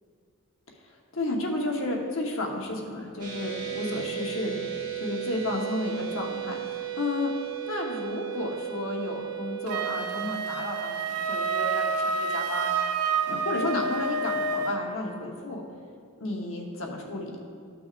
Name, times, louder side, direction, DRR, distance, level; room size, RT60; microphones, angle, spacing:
voice 1, 1.1-4.5 5.0-7.3 7.7-12.7 13.3-15.6 16.2-17.4, left 2 dB, 65° left, 0 dB, 1.1 m, -32 dB
sound 1, 3.2-9.9, right 11 dB, 40° right, 1.4 m, -35 dB
Wind instrument woodwind instrument, 9.7-14.9, right 4 dB, 90° right, 0.4 m, -28 dB
13.5 x 6.0 x 2.5 m, 2.2 s
head